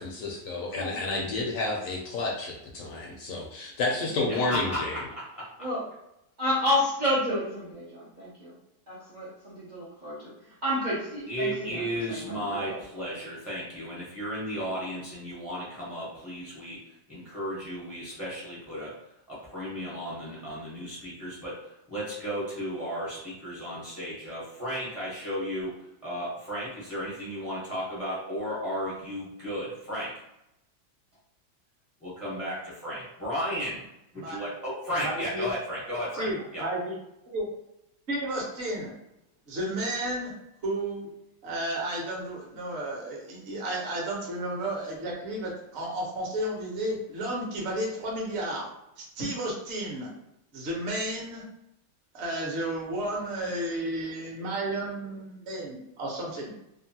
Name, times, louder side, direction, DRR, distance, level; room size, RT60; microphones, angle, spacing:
voice 1, 0.0-5.0, left 2 dB, 70° left, -1 dB, 0.8 m, -30 dB
voice 2, 0.5-0.9 4.1-4.3 5.6-5.8 6.4-8.5 8.9-10.3 10.6-12.8, left 1 dB, 65° right, -7 dB, 0.4 m, -30 dB
voice 3, 4.3-5.7 11.3-16.8 17.1-18.9 19.3-21.6 21.9-25.8 26.0-30.1 32.0-33.8 34.1-36.6, equal, ahead, -9 dB, 0.5 m, -34 dB
voice 4, 35.0-35.5 36.1-37.0 37.3-37.5 38.1-38.9 39.5-40.3 40.6-41.1 41.4-48.7 49.0-50.1 50.5-51.4 52.1-56.5, right 1 dB, 50° right, -2 dB, 0.9 m, -32 dB
2.8 x 2.3 x 2.7 m, 0.85 s
omnidirectional pair, 1.8 m